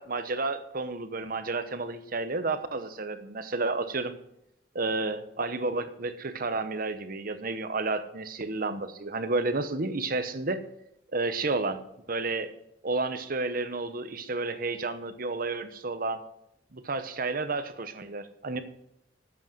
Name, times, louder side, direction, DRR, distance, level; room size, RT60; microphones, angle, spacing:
voice 1, 0.0-4.1 4.7-10.6 11.1-11.8 12.1-12.5 12.8-16.2 16.7-18.6, right 3 dB, 50° right, 11 dB, 1.0 m, -31 dB
12.5 x 8.3 x 6.1 m, 0.78 s
head